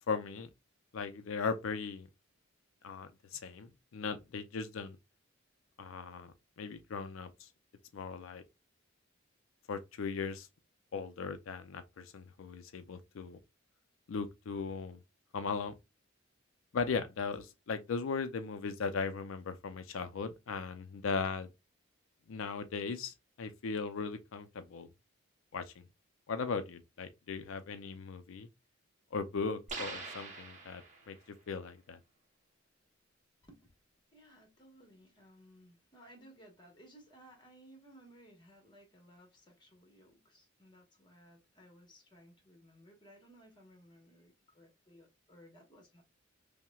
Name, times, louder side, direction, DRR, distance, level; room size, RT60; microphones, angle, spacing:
voice 1, 0.1-0.5 0.9-2.1 2.8-5.0 5.8-7.5 7.9-8.4 9.7-10.5 10.9-13.4 14.1-15.0 15.3-15.7 16.7-21.5 22.3-24.9 25.5-25.8 26.3-28.5 29.1-31.2 31.5-32.0, left 5 dB, 90° left, 0.4 m, -38 dB
sound 1, 29.7-31.2, right 4 dB, 35° right, 0.8 m, -44 dB
voice 2, 34.1-46.0, equal, 20° left, 1.1 m, -59 dB
5.6 x 2.1 x 2.3 m
head